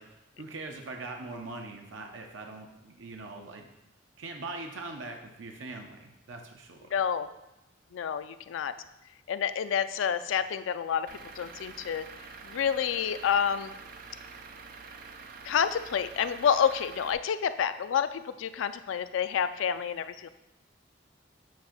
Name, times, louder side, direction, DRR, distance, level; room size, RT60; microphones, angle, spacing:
voice 1, 0.0-3.7 4.2-6.9, right 3 dB, 80° right, 3 dB, 0.7 m, -42 dB
voice 2, 6.9-7.3 7.9-8.7 9.3-11.1 11.4-12.1 12.4-13.7 15.5-20.3, left 8 dB, 90° left, 12 dB, 0.4 m, -28 dB
Truck / Idling, 11.1-17.1, right 4 dB, 50° right, 0.4 m, -47 dB
7.5 x 2.7 x 5.8 m, 0.91 s
head